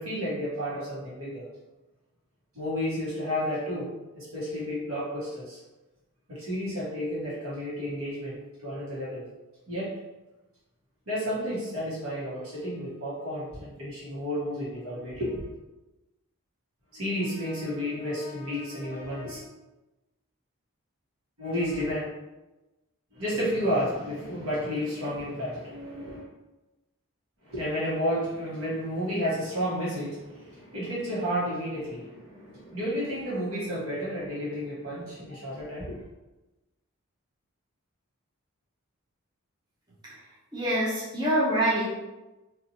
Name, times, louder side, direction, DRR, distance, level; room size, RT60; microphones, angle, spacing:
voice 1, 0.0-1.5 2.5-5.6 6.3-8.4 8.6-9.3 9.7-9.9 11.1-15.5 16.9-19.5 21.4-22.0 23.1-26.3 27.4-36.0, equal, 70° right, -7 dB, 1.2 m, -31 dB
voice 2, 40.5-41.9, right 1 dB, 20° right, -10 dB, 0.7 m, -25 dB
2.8 x 2.5 x 2.7 m, 1.1 s
head